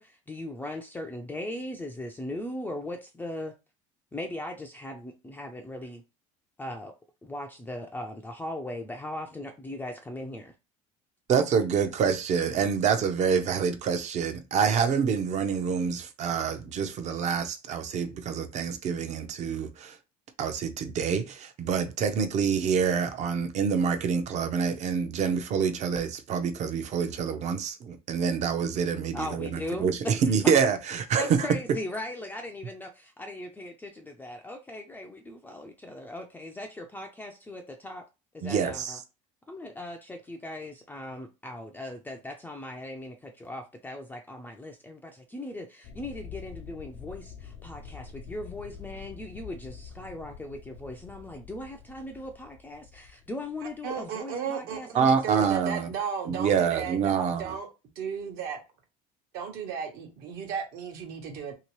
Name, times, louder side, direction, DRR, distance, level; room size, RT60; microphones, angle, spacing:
voice 1, 0.0-3.5 4.1-6.0 6.6-6.9 7.2-10.5 29.1-30.2 31.2-38.0 38.3-39.0 39.5-55.5, left 1 dB, 10° left, 0.4 m, -39 dB
voice 2, 11.3-20.0 20.4-31.5 38.4-39.0 54.9-55.9 56.3-57.6, right 6 dB, 45° right, 0.6 m, -26 dB
sound 1, 45.8-54.1, left 6 dB, 65° left, 0.6 m, -46 dB
voice 3, 53.8-55.0 55.2-57.7 57.9-58.6 59.3-61.5, right 7 dB, 65° right, 1.1 m, -34 dB
2.8 x 2.8 x 3.1 m
supercardioid pair, 110°, 17 cm